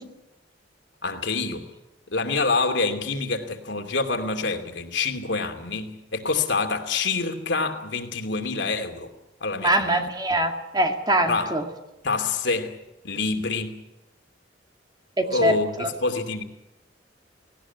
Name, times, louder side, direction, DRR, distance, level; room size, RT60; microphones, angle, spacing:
voice 1, 1.0-1.7 2.1-9.1 9.4-10.0 11.2-11.6 12.0-12.8 13.0-13.8 15.2-16.4, left 3 dB, 85° left, 5 dB, 2.7 m, -26 dB
voice 2, 9.6-11.6 15.2-15.5 15.8-15.9, right 1 dB, 25° right, 4 dB, 2.2 m, -23 dB
18.5 x 18.0 x 9.5 m, 0.96 s
head